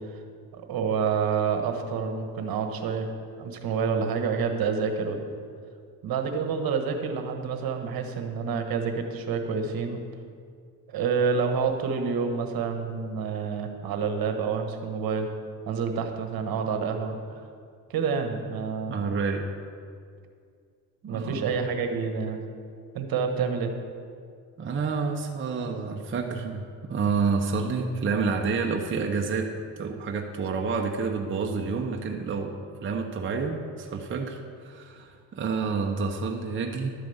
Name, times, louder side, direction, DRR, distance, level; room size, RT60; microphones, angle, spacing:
voice 1, 0.5-3.1 3.4-5.2 6.0-10.0 10.9-15.3 15.7-17.2 17.9-19.0 21.1-22.4 22.9-23.7, right 5 dB, 60° right, 5 dB, 1.4 m, -28 dB
voice 2, 18.9-19.4 21.0-21.4 24.6-29.5 29.8-32.5 32.8-36.9, right 4 dB, 30° right, 2 dB, 0.9 m, -29 dB
12.0 x 5.0 x 7.9 m, 2.2 s
cardioid pair, 100°, 40 cm